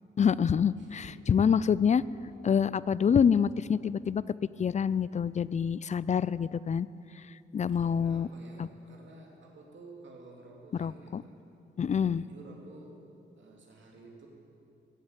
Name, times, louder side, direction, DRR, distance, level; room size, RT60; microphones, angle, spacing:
voice 1, 0.2-2.0 2.4-4.2 4.6-6.9 7.5-8.3 8.6-8.7 10.8-11.2 11.8-12.2, left 7 dB, 35° left, 19 dB, 0.4 m, -26 dB
voice 2, 0.7-1.3 7.7-11.3 11.9-14.3, right 2 dB, 70° right, -1 dB, 2.7 m, -52 dB
14.0 x 7.8 x 9.0 m, 2.7 s
cardioid pair, 70°, 20 cm